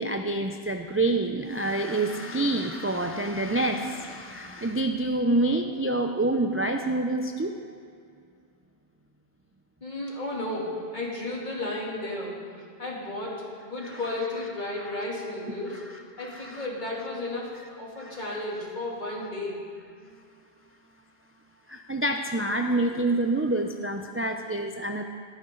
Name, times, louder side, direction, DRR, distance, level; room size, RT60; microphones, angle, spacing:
voice 1, 0.0-7.8 13.8-14.0 14.8-14.9 15.7-15.8 16.2-16.6 18.0-18.2 21.7-25.0, right 2 dB, 20° right, 4 dB, 0.4 m, -27 dB
voice 2, 9.8-12.4 12.8-15.8 16.2-17.5 17.8-19.6, left 2 dB, 45° left, -5 dB, 3.1 m, -33 dB
17.0 x 14.0 x 3.9 m, 2.3 s
omnidirectional pair, 1.1 m